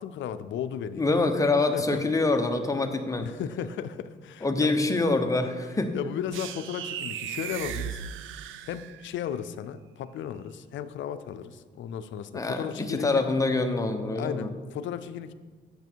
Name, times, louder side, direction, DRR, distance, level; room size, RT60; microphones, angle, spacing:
voice 1, 0.0-1.2 1.7-2.0 3.2-4.8 5.9-8.0 8.6-13.3 14.1-15.3, left 9 dB, 70° left, 13 dB, 0.5 m, -35 dB
voice 2, 1.0-3.3 4.4-5.9 12.3-14.5, left 3 dB, 15° left, 5 dB, 0.9 m, -25 dB
sound 1, 6.3-9.2, right 10 dB, 85° right, 0.5 m, -36 dB
8.0 x 6.8 x 4.6 m, 1.5 s
cardioid pair, 90°, 20 cm